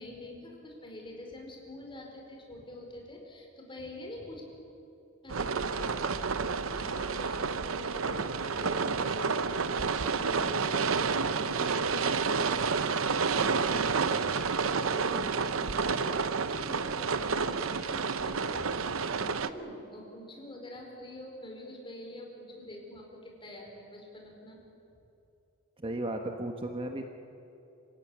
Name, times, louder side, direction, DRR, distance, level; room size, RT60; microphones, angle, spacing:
voice 1, 0.0-4.4 5.2-18.9 19.1-24.6, left 1 dB, 25° left, 1 dB, 5.0 m, -46 dB
sound 1, 5.3-19.5, right 5 dB, 75° right, 0.8 m, -30 dB
voice 2, 13.3-13.7 25.8-27.1, right 1 dB, 25° right, 4 dB, 1.3 m, -36 dB
26.5 x 16.0 x 9.9 m, 2.9 s
head